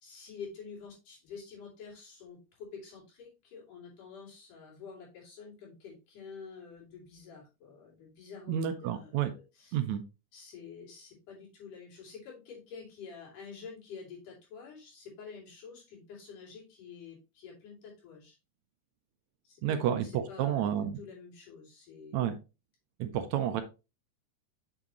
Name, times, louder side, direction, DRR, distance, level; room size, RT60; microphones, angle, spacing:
voice 1, 0.0-9.8 10.3-18.4 19.4-22.3, left 5 dB, 90° left, -3 dB, 4.3 m, -48 dB
voice 2, 8.5-9.3 9.7-10.0 19.6-21.0 22.1-22.3 23.0-23.6, right 10 dB, 75° right, 10 dB, 1.8 m, -30 dB
6.7 x 6.1 x 3.0 m, 0.28 s
omnidirectional pair, 3.5 m